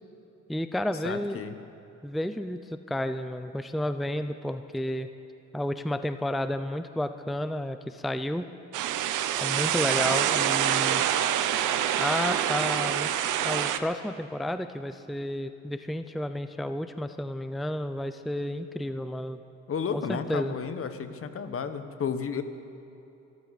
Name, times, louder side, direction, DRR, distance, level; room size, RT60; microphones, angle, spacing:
voice 1, 0.5-1.4 2.0-5.1 5.5-8.5 9.4-11.0 12.0-13.1 13.4-19.4 19.9-20.5, left 1 dB, ahead, 10 dB, 0.5 m, -31 dB
voice 2, 1.0-1.6 19.7-22.4, left 6 dB, 45° left, 10 dB, 1.2 m, -32 dB
sound 1, 8.7-13.8, right 10 dB, 85° right, 0.8 m, -26 dB
24.5 x 13.0 x 4.1 m, 2.9 s
cardioid pair, 90°, 30 cm